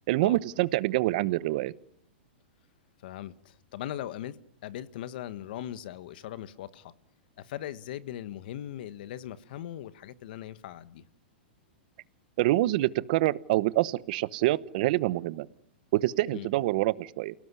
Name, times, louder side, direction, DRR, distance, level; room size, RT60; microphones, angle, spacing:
voice 1, 0.1-1.7 12.4-15.5 15.9-17.3, right 17 dB, 50° right, 17 dB, 1.0 m, -26 dB
voice 2, 3.0-4.4 4.6-6.9 7.4-11.0 16.3-16.5, left 12 dB, 60° left, 14 dB, 1.4 m, -39 dB
29.0 x 18.5 x 9.8 m, 0.79 s
hypercardioid pair, 145°, 6 cm